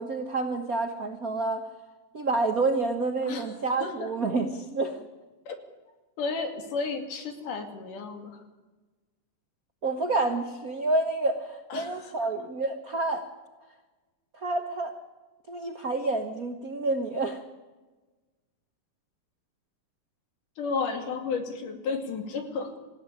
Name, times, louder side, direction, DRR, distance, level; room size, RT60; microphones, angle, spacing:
voice 1, 0.0-1.7 2.1-5.0 9.8-13.3 14.4-14.9 15.5-17.4, right 3 dB, 65° right, 6 dB, 0.8 m, -28 dB
voice 2, 6.2-8.4 11.7-12.3 20.6-22.8, left 4 dB, 70° left, 6 dB, 4.0 m, -33 dB
26.5 x 15.5 x 10.0 m, 1.3 s
omnidirectional pair, 3.9 m